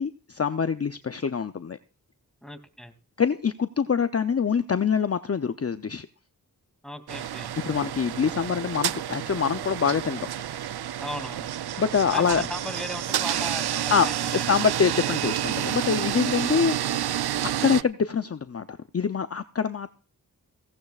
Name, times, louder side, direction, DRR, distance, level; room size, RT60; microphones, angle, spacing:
voice 1, 0.0-1.8 3.2-6.1 7.6-10.3 11.8-12.5 13.9-14.1 14.3-17.2 17.4-19.9, left 6 dB, 40° left, 0.6 m, -25 dB
voice 2, 2.4-2.9 6.8-7.5 11.0-11.5 12.1-14.6, equal, ahead, 2.6 m, -37 dB
sound 1, 7.1-17.8, right 11 dB, 80° right, 0.5 m, -29 dB
17.0 x 16.0 x 2.4 m
cardioid pair, 40°, 38 cm